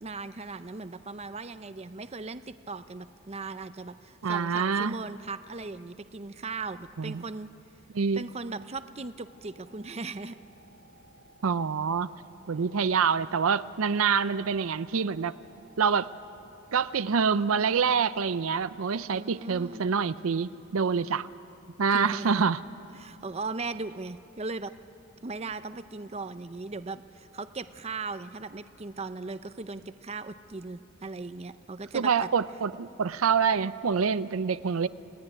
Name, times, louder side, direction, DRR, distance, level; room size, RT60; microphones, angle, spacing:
voice 1, 0.0-7.5 8.1-10.4 19.1-19.9 21.9-22.5 22.9-24.7 25.2-32.3, right 3 dB, 30° right, 11 dB, 0.6 m, -38 dB
voice 2, 4.2-5.0 7.0-7.2 7.9-8.2 11.4-12.1 12.5-15.3 15.8-16.1 16.7-21.3 21.8-22.6 31.9-34.9, right 6 dB, 80° right, 14 dB, 0.6 m, -26 dB
sound 1, 9.2-19.3, right 1 dB, 60° left, 5.3 m, -57 dB
29.0 x 18.0 x 9.9 m, 2.7 s
head